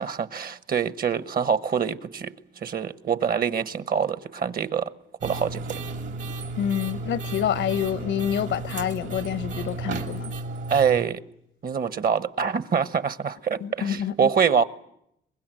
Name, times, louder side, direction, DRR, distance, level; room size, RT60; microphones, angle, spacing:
voice 1, 0.0-2.3 2.6-4.9 5.2-5.6 10.7-11.2 11.6-14.6, right 7 dB, 50° right, 1.2 m, -25 dB
sound 1, 5.2-11.0, right 3 dB, 70° right, 2.9 m, -33 dB
voice 2, 6.6-10.3 13.6-14.3, left 9 dB, 70° left, 0.9 m, -27 dB
23.5 x 20.5 x 9.1 m
cardioid pair, 90°, 20 cm